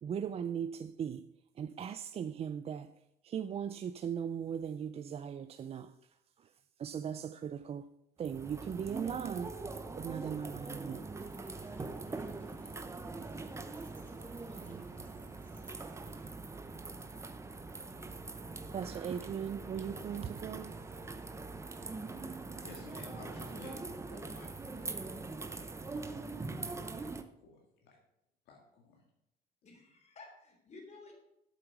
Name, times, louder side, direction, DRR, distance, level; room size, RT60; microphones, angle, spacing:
voice 1, 0.0-1.3 1.6-2.9 3.2-5.9 6.4-6.5 6.8-7.9 8.2-9.6 10.0-11.6 18.3-18.5 18.7-20.9 25.9-26.0, right 8 dB, 35° right, 0.4 m, -39 dB
sound 1, 8.2-27.2, right 3 dB, 15° right, 0.8 m, -43 dB
sound 2, 11.1-16.3, left 1 dB, 10° left, 3.2 m, -67 dB
sound 3, 12.3-23.6, right 2 dB, 85° right, 1.8 m, -64 dB
voice 2, 22.6-25.3 25.8-27.2 27.4-28.0 28.4-29.0, left 4 dB, 80° left, 1.9 m, -55 dB
voice 3, 29.6-31.1, left 3 dB, 40° left, 3.4 m, -53 dB
8.2 x 7.9 x 5.9 m
cardioid pair, 110°, 17 cm